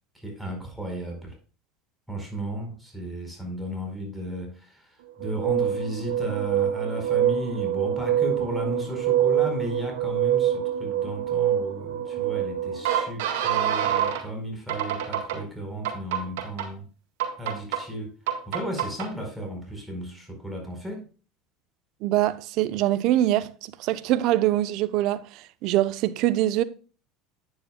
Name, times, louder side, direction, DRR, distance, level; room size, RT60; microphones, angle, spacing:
voice 1, 0.1-1.4 2.1-16.8 17.4-21.1, equal, 5° right, 4.6 m, -34 dB
sound 1, 5.2-14.2 14.7-15.4 15.8-16.7 17.2-17.8 18.3-19.1, right 10 dB, 80° right, 1.9 m, -25 dB
voice 2, 22.0-26.6, right 14 dB, 60° right, 0.8 m, -24 dB
9.8 x 9.8 x 2.3 m
hypercardioid pair, 90°, 0 cm